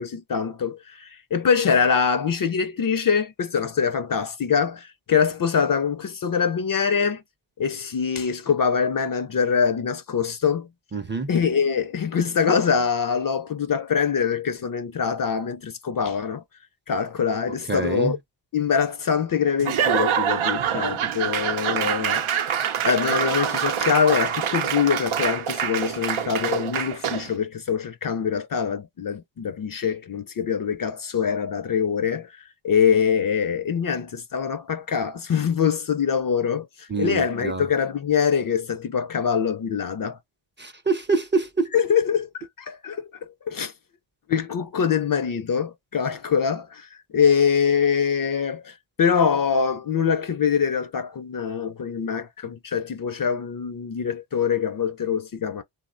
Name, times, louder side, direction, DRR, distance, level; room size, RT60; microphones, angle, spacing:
voice 1, 0.0-7.2 7.6-10.7 11.3-16.4 16.9-18.2 18.5-22.5 22.8-40.2 41.7-43.1 43.5-43.7 44.3-55.6, left 6 dB, 45° left, 0.4 m, -24 dB
voice 2, 10.9-11.3 17.7-18.1 36.9-37.7 40.6-41.7, right 4 dB, 25° right, 0.5 m, -25 dB
Laughter / Applause / Crowd, 19.6-27.4, right 8 dB, 85° right, 0.6 m, -25 dB
3.6 x 2.1 x 2.4 m
wide cardioid pair, 120°, 48 cm